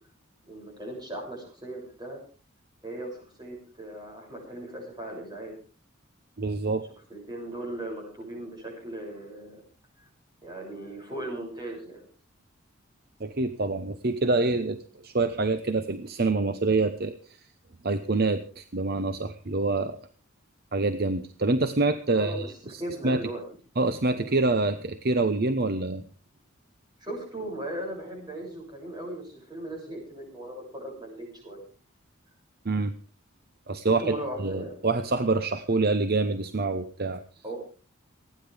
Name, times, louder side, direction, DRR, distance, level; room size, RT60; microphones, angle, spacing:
voice 1, 0.5-2.2 2.8-5.5 7.1-9.6 10.4-12.1 22.1-23.4 27.0-31.6 33.9-34.8 37.4-37.6, right 1 dB, 20° right, -1 dB, 6.9 m, -38 dB
voice 2, 6.4-6.8 13.2-17.1 17.8-20.0 20.7-23.2 23.8-26.0 32.6-32.9 33.7-37.2, right 3 dB, 45° right, 9 dB, 0.8 m, -26 dB
29.5 x 10.0 x 3.5 m, 0.39 s
head